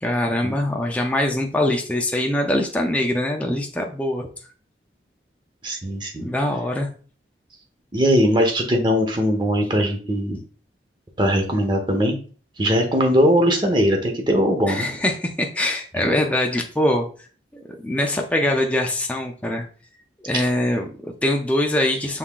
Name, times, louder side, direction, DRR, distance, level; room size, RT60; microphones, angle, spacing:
voice 1, 0.0-4.3 6.2-6.9 14.7-17.1 17.5-19.6 20.2-22.2, left 1 dB, 10° left, 1 dB, 0.5 m, -23 dB
voice 2, 5.6-6.3 7.9-10.4 11.2-12.2 12.6-14.9 20.3-20.4, equal, 25° right, 4 dB, 0.8 m, -20 dB
5.6 x 3.5 x 2.4 m, 0.41 s
head